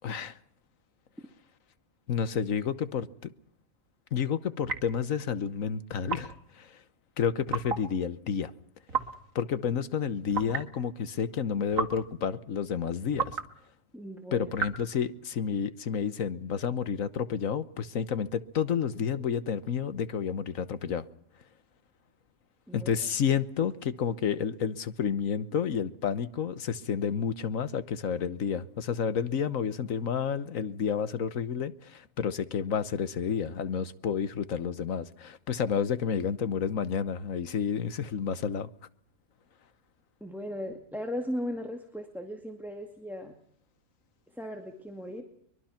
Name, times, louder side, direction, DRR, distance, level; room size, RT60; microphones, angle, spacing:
voice 1, 0.0-0.3 2.1-3.1 4.1-6.7 7.2-8.5 9.3-13.4 14.3-21.0 22.7-38.7, left 7 dB, 80° left, 1.5 m, -30 dB
sound 1, 4.6-5.0 6.1-6.4 7.5-7.9 8.9-9.2 10.3-10.7 11.7-12.1 13.1-13.5 14.6-14.9, right 5 dB, 75° right, 2.5 m, -33 dB
voice 2, 13.9-14.5 22.7-23.1 40.2-43.3 44.3-45.2, equal, ahead, 2.1 m, -37 dB
24.0 x 22.5 x 5.9 m
omnidirectional pair, 1.4 m